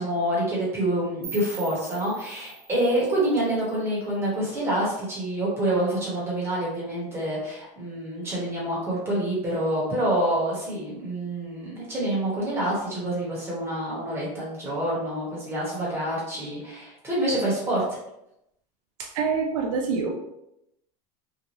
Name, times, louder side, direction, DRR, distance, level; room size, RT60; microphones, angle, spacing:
voice 1, 0.0-17.8, right 1 dB, 15° right, -6 dB, 1.1 m, -27 dB
sound 1, 1.2-4.2, right 5 dB, 55° right, 1.2 m, -43 dB
voice 2, 19.0-20.1, right 5 dB, 70° right, 0 dB, 0.5 m, -26 dB
2.8 x 2.2 x 3.0 m, 0.82 s
supercardioid pair, 155°, 17 cm